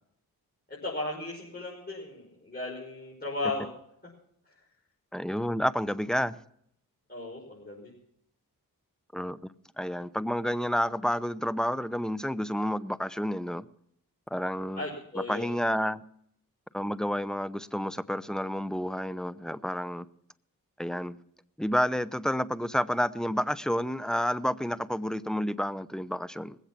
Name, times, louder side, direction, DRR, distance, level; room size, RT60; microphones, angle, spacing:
voice 1, 0.7-3.7 7.1-7.9 14.7-15.5, left 2 dB, 25° left, 5.5 m, -36 dB
voice 2, 5.1-6.4 9.1-9.4 9.8-13.6 14.3-14.8 15.3-16.0 16.7-20.0 20.8-21.2 21.6-26.6, equal, ahead, 0.8 m, -30 dB
20.5 x 8.1 x 5.9 m
cardioid pair, 40°, 38 cm